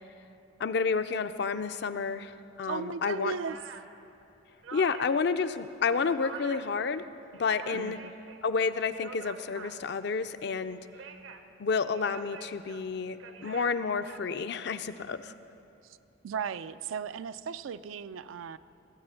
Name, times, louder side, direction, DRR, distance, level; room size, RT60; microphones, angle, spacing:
voice 1, 0.6-3.3 4.7-7.0 7.4-8.0 8.4-10.8 11.6-15.3, left 5 dB, 60° left, 12 dB, 0.4 m, -30 dB
sound 1, 2.6-2.7 3.0-5.3 5.7-6.8 7.2-8.4 8.8-10.1 10.7-11.5 11.9-14.2, right 5 dB, 75° right, 0.8 m, -47 dB
voice 2, 2.6-3.6 7.7-8.1 15.8-16.0 16.2-18.6, right 6 dB, 90° right, 14 dB, 0.4 m, -36 dB
17.0 x 8.0 x 5.7 m, 2.7 s
head